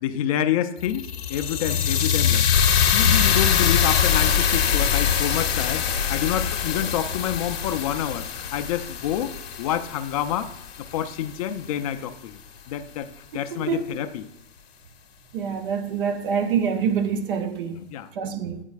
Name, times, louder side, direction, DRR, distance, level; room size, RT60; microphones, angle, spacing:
voice 1, 0.0-9.3 9.6-10.5 10.9-12.4 12.7-13.1 13.3-14.2 17.8-18.1, left 10 dB, 35° left, 0.4 m, -28 dB
sound 1, 0.8-11.0, left 7 dB, 65° left, 0.8 m, -23 dB
voice 2, 15.3-17.8 18.2-18.6, right 7 dB, 50° right, 0.7 m, -25 dB
9.1 x 4.3 x 2.4 m
hypercardioid pair, 120°, 34 cm